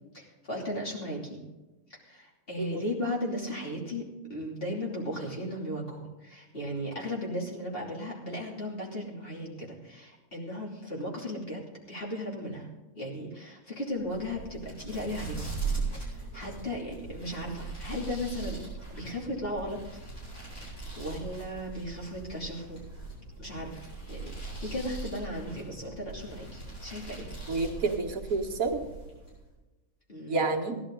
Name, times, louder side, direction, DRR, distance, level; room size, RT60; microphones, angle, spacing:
voice 1, 0.1-1.4 1.9-12.7 12.9-15.5 15.9-18.6 18.9-19.8 20.6-22.8 23.4-23.8 24.1-27.3 30.1-30.5, left 1 dB, 40° left, -3 dB, 3.1 m, -36 dB
sound 1, 13.9-29.5, right 4 dB, 70° left, 5.6 m, -40 dB
voice 2, 27.5-28.8 30.3-30.8, right 3 dB, 70° right, 1 dB, 1.9 m, -29 dB
17.0 x 11.0 x 3.8 m, 1.1 s
omnidirectional pair, 1.5 m